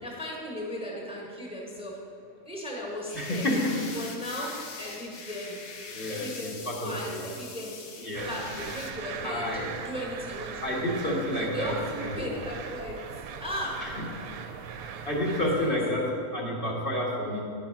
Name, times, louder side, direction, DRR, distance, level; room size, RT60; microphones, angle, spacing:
voice 1, 0.0-2.0 2.4-3.5 3.9-4.5 4.8-5.6 6.1-9.5 9.8-10.9 11.5-13.0 13.4-13.7 15.2-15.8, equal, 5° right, -3 dB, 1.4 m, -37 dB
sound 1, 3.1-8.9, left 4 dB, 75° left, 1.4 m, -42 dB
voice 2, 3.1-3.7 5.9-7.3 8.0-8.7 9.2-9.7 10.6-11.7 12.0-12.3 13.8-13.9 15.1-17.4, left 1 dB, 40° left, -5 dB, 1.7 m, -30 dB
sound 2, 8.1-15.7, right 6 dB, 80° right, 1.1 m, -40 dB
10.5 x 5.4 x 5.7 m, 2.6 s
omnidirectional pair, 1.5 m